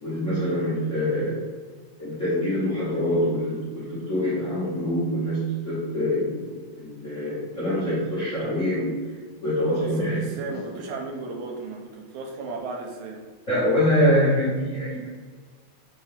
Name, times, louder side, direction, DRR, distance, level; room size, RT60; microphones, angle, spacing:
voice 1, 0.0-1.4 2.0-9.0 9.4-10.2 13.5-15.1, equal, 85° left, -10 dB, 0.6 m, -25 dB
voice 2, 9.8-13.2, right 3 dB, 85° right, 1 dB, 2.0 m, -35 dB
4.5 x 2.7 x 3.4 m, 1.5 s
omnidirectional pair, 3.4 m